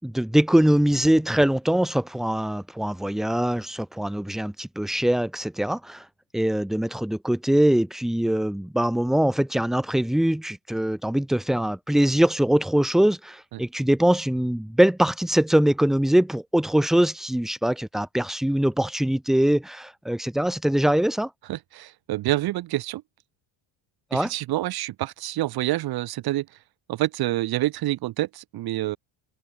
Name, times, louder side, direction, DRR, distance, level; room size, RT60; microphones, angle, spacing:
voice 1, 0.0-6.0 6.3-21.3 24.1-24.3, right 1 dB, ahead, 0.5 m, -22 dB
voice 2, 21.5-23.0 24.1-26.5 26.9-29.0, right 16 dB, 55° right, 1.4 m, -27 dB
cardioid pair, 180°, 44 cm